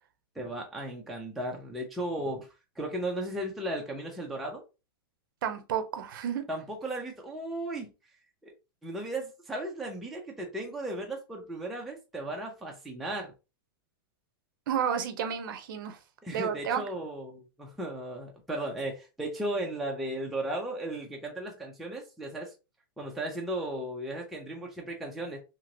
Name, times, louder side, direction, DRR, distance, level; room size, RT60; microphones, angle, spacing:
voice 1, 0.4-2.5 2.8-4.6 6.5-7.9 8.4-8.5 8.8-13.3 16.2-22.5 23.0-25.4, right 1 dB, ahead, 0.3 m, -35 dB
voice 2, 5.4-6.4 14.7-16.0 16.3-16.8, right 8 dB, 55° right, 0.6 m, -31 dB
2.9 x 2.8 x 2.6 m
supercardioid pair, 165°, 13 cm